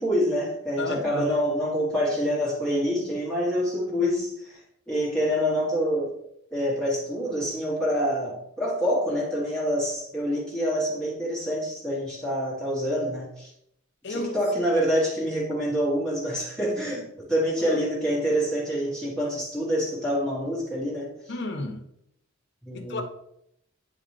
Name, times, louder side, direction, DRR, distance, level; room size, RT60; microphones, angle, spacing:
voice 1, 0.0-4.6 4.9-6.2 6.5-13.5 14.1-21.1 22.6-23.0, equal, 5° left, 1.4 m, -26 dB
voice 2, 0.8-1.4 14.0-14.3 17.6-17.8 21.3-21.8 22.7-23.0, left 2 dB, 55° left, 0.7 m, -32 dB
9.5 x 3.9 x 3.2 m
head